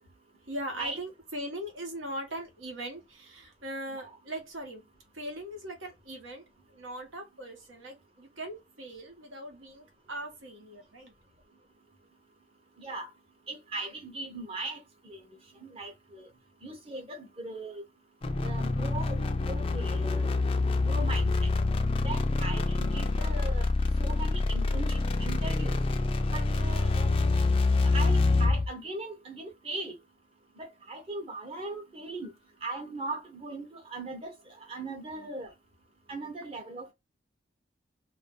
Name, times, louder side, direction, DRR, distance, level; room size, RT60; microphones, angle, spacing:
voice 1, 0.5-4.9 5.1-11.1 22.8-23.1, right 1 dB, 85° right, 1.1 m, -40 dB
voice 2, 12.8-13.1 13.5-15.3 15.6-16.3 16.6-17.8 18.4-20.3 20.7-21.5 22.0-23.7 24.0-25.8 26.3-27.2 27.8-30.0 30.6-32.3 32.6-35.5 36.1-36.9, right 2 dB, 30° right, 0.7 m, -39 dB
sound 1, 18.2-28.7, left 3 dB, 30° left, 0.3 m, -26 dB
2.5 x 2.1 x 3.6 m
head